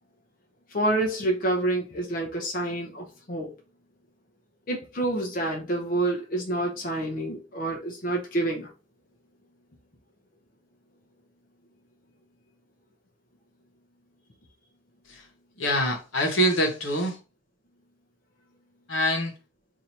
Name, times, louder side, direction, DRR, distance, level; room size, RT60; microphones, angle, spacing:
voice 1, 0.7-3.5 4.7-8.7, right 2 dB, 45° left, 0.6 m, -28 dB
voice 2, 15.6-17.2 18.9-19.3, equal, 80° left, 1.1 m, -25 dB
2.8 x 2.6 x 4.3 m
head